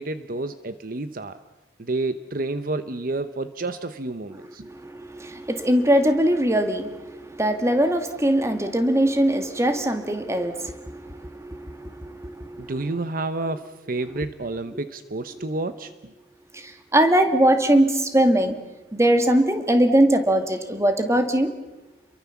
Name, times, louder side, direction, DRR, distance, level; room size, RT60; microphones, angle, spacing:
voice 1, 0.0-1.4 1.8-4.7 12.6-16.1, right 2 dB, 50° right, 11 dB, 0.9 m, -30 dB
voice 2, 4.6-12.9 14.1-14.2 15.4-15.5 16.5-18.6 18.9-21.5, right 1 dB, 15° right, 7 dB, 2.1 m, -21 dB
29.5 x 23.0 x 7.2 m, 1.1 s
head